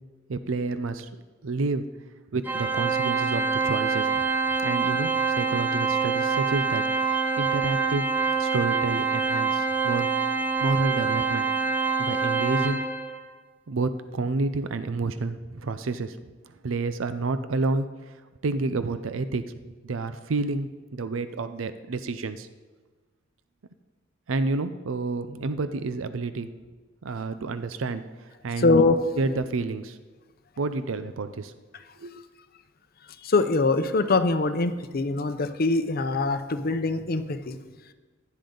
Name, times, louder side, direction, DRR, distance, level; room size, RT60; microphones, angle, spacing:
voice 1, 0.3-1.1 1.4-1.8 2.3-4.1 4.6-8.1 8.4-10.1 10.6-11.5 12.0-12.8 13.7-16.2 16.6-18.1 18.4-19.4 19.8-22.5 24.3-26.5 27.0-28.0 28.4-28.8 29.2-30.0 30.6-31.5 32.0-32.2, right 3 dB, 85° right, 11 dB, 0.5 m, -29 dB
Organ, 2.4-13.2, right 5 dB, 10° right, 0.6 m, -25 dB
voice 2, 28.6-29.0 33.2-37.6, left 3 dB, 50° left, 9 dB, 0.7 m, -23 dB
15.5 x 10.5 x 3.9 m, 1.3 s
head